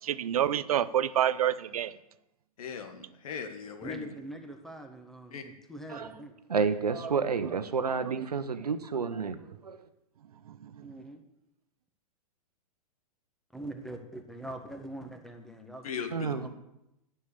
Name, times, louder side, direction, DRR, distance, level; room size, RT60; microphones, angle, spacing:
voice 1, 0.0-2.0 7.4-7.5 8.0-8.3 10.4-10.9, right 10 dB, 70° right, 16 dB, 0.7 m, -28 dB
voice 2, 2.6-4.1 5.3-5.4 15.8-16.3, left 6 dB, 65° left, 8 dB, 1.7 m, -38 dB
voice 3, 3.8-6.3 10.8-11.2 13.5-16.6, right 1 dB, ahead, 4 dB, 1.5 m, -43 dB
voice 4, 6.5-9.9 16.1-16.6, right 5 dB, 85° right, 10 dB, 1.1 m, -30 dB
9.5 x 7.1 x 6.8 m, 0.87 s
hypercardioid pair, 110°, 20 cm